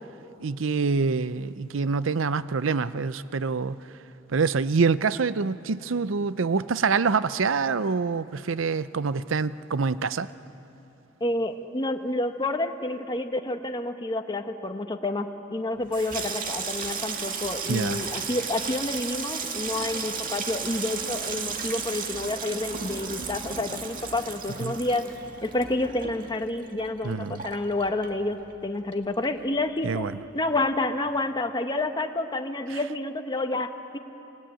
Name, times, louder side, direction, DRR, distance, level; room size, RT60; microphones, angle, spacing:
voice 1, 0.4-3.8 4.3-10.3 17.7-18.0 24.6-24.7 27.0-27.4 29.8-30.1 32.7-32.8, right 5 dB, 80° right, 15 dB, 0.6 m, -26 dB
voice 2, 11.2-25.1 25.4-30.1 30.3-34.0, left 2 dB, 25° left, 6 dB, 1.2 m, -29 dB
Water tap faucet / Sink (filling or washing), 15.8-28.6 28.9-29.6 29.8-30.2, right 5 dB, 45° right, 2.0 m, -34 dB
29.5 x 19.0 x 9.0 m, 2.9 s
head